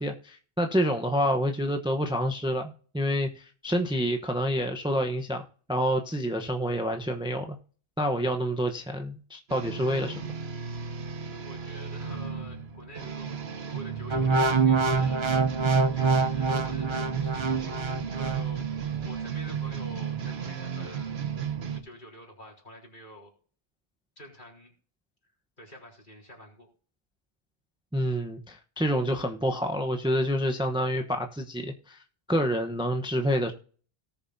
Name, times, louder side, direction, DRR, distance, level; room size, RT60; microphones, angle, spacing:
voice 1, 0.0-5.4 5.7-7.6 8.0-10.3 27.9-32.0 32.3-33.5, equal, 5° right, 4 dB, 0.8 m, -28 dB
sound 1, 9.5-21.8, right 7 dB, 90° right, 1.3 m, -34 dB
voice 2, 11.3-15.2 15.9-17.8 18.1-18.7 19.0-21.2 21.7-23.3 24.2-24.7 25.6-26.7, left 1 dB, 50° left, -2 dB, 4.0 m, -47 dB
sound 2, 14.1-18.4 19.0-19.2, right 4 dB, 35° right, 0.7 m, -25 dB
18.5 x 7.0 x 2.7 m, 0.42 s
omnidirectional pair, 1.0 m